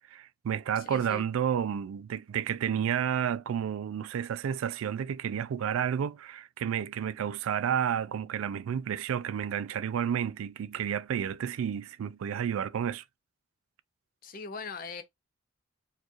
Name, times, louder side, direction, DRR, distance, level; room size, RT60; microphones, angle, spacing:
voice 1, 0.1-13.0, right 8 dB, 85° right, 0.3 m, -31 dB
voice 2, 0.8-1.2 14.2-15.0, left 4 dB, 45° left, 0.5 m, -40 dB
4.4 x 2.4 x 3.0 m
head